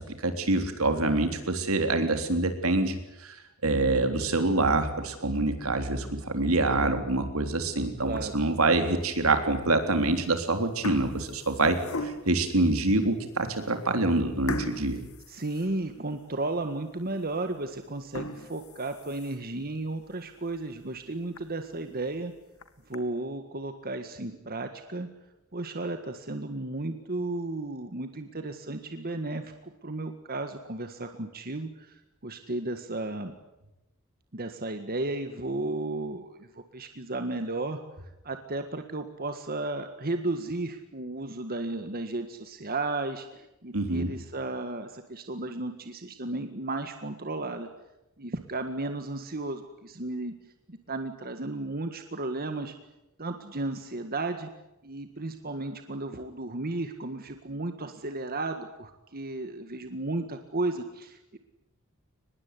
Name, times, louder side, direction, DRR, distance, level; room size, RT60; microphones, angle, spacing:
voice 1, 0.2-3.3 3.6-15.0 43.7-44.1, right 2 dB, 75° right, 7 dB, 3.6 m, -26 dB
sound 1, 8.0-8.6 9.1-9.2 10.1-10.3 10.6-12.5 13.1-13.2 13.5-13.7 14.5-16.2 16.6-16.7 17.2-17.3 17.9-19.6 20.0-20.1 20.5-20.6 21.0-21.1 21.4-21.5 22.4-23.0, left 2 dB, 80° left, 2.1 m, -38 dB
voice 2, 15.3-22.3 22.9-25.1 25.5-33.3 34.3-37.8 38.2-47.7 48.2-50.3 50.7-52.7 53.2-54.5 54.8-61.4, right 2 dB, 45° right, 7 dB, 1.7 m, -34 dB
24.0 x 21.0 x 9.7 m, 0.93 s
head